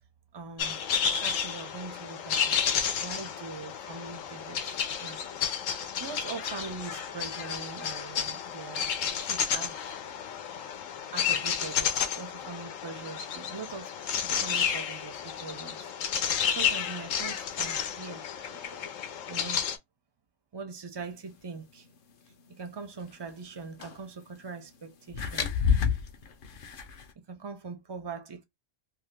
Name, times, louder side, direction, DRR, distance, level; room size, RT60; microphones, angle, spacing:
voice 1, 0.3-5.2 6.0-8.9 9.2-10.0 11.1-15.9 16.2-19.0 19.3-19.6 20.5-21.9 22.5-25.5 27.3-28.4, right 4 dB, 40° right, 0.3 m, -42 dB
sound 1, 0.6-19.8, left 7 dB, 90° left, 1.0 m, -31 dB
sound 2, 23.8-24.0 25.1-27.1, left 7 dB, 55° left, 0.6 m, -28 dB
2.7 x 2.3 x 3.2 m
omnidirectional pair, 1.3 m